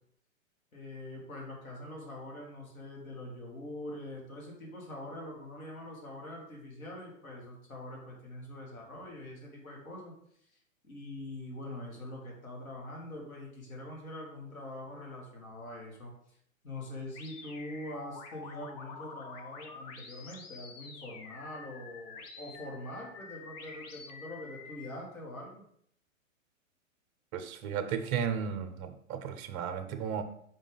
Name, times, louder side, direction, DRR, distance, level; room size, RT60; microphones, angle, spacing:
voice 1, 0.7-10.1 10.8-16.4 16.6-25.6, left 1 dB, 85° left, -1 dB, 2.3 m, -44 dB
sound 1, 17.1-24.9, left 4 dB, 30° left, 0.7 m, -48 dB
voice 2, 27.3-30.2, right 7 dB, 25° right, 8 dB, 0.6 m, -34 dB
5.2 x 3.7 x 5.4 m, 0.69 s
hypercardioid pair, 125°, 41 cm